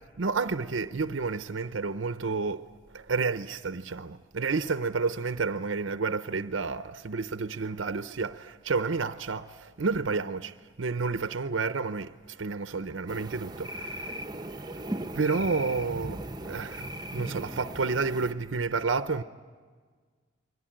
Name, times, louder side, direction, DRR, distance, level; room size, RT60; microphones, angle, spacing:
voice 1, 0.2-2.7 2.9-14.2 15.1-19.2, right 4 dB, 85° right, 0.7 m, -30 dB
sound 1, 13.1-18.3, right 1 dB, 20° right, 0.9 m, -38 dB
28.5 x 22.5 x 9.0 m
head